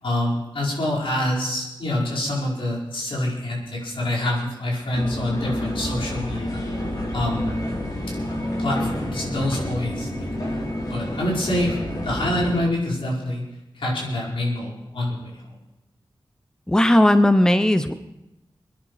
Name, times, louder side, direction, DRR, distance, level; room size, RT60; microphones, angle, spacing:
voice 1, 0.0-6.6 7.1-7.5 8.6-10.5 10.9-11.8 12.0-13.4 13.7-15.6, left 1 dB, 85° left, -4 dB, 5.0 m, -26 dB
sound 1, 4.9-12.6, left 1 dB, 45° left, 4.6 m, -29 dB
voice 2, 16.7-17.9, left 1 dB, 5° left, 9 dB, 0.7 m, -16 dB
24.0 x 10.5 x 4.8 m, 0.95 s
wide cardioid pair, 100°, 9 cm